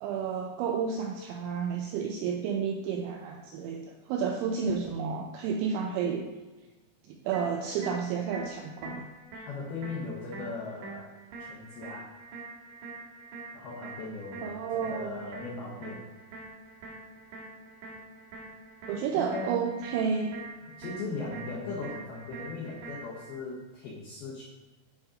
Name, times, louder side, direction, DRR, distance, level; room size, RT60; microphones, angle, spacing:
voice 1, 0.0-6.3 7.1-9.1 14.4-15.3 18.9-20.4, right 6 dB, 85° right, 2 dB, 2.6 m, -31 dB
sound 1, 7.3-23.3, right 3 dB, 65° right, 3.0 m, -45 dB
voice 2, 9.4-12.2 13.5-16.1 19.2-19.9 20.6-24.4, left 3 dB, 80° left, -5 dB, 2.2 m, -39 dB
10.5 x 3.7 x 5.0 m, 1.2 s
omnidirectional pair, 5.9 m